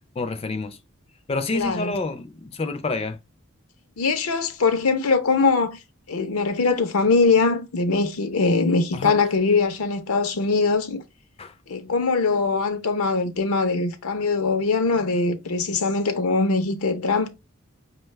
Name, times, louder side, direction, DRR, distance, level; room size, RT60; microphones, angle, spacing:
voice 1, 0.2-0.8 1.3-3.2 8.9-9.2 11.4-11.5, left 3 dB, 25° left, 0.4 m, -28 dB
voice 2, 1.5-1.9 4.0-5.8 6.1-11.0 11.7-17.3, left 4 dB, 75° left, 0.6 m, -22 dB
5.2 x 2.2 x 3.1 m
head